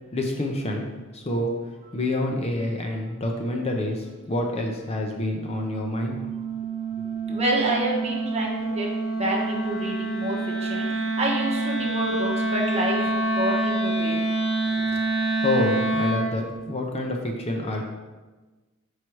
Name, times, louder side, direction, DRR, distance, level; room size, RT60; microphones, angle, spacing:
voice 1, 0.1-0.9 1.1-6.2 6.9-7.4 14.7-17.8, left 1 dB, 30° left, 1 dB, 0.6 m, -28 dB
Wind instrument woodwind instrument, 4.9-16.4, right 2 dB, ahead, 2.2 m, -27 dB
voice 2, 7.3-8.9 9.1-14.2, right 1 dB, 30° right, -2 dB, 1.2 m, -28 dB
5.6 x 4.7 x 4.6 m, 1.2 s
head